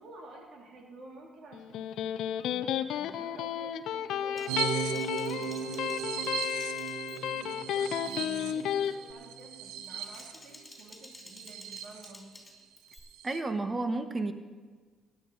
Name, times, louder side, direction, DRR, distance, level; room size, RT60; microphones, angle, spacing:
voice 1, 0.0-1.9 2.5-6.3 7.3-12.3, right 2 dB, 65° right, 0 dB, 3.0 m, -51 dB
Electric guitar, 1.5-8.9, left 10 dB, 70° left, 0.5 m, -33 dB
Typing, 4.4-7.5 7.8-8.2 8.6-9.0 9.8-13.0, left 2 dB, 15° left, 3.6 m, -53 dB
sound 1, 4.5-12.1 12.5-12.6 12.9-13.4, right 9 dB, 80° right, 0.8 m, -37 dB
voice 2, 13.2-14.3, right 2 dB, 30° right, 9 dB, 1.3 m, -31 dB
16.5 x 10.5 x 4.1 m, 1.5 s
hypercardioid pair, 55°, 0 cm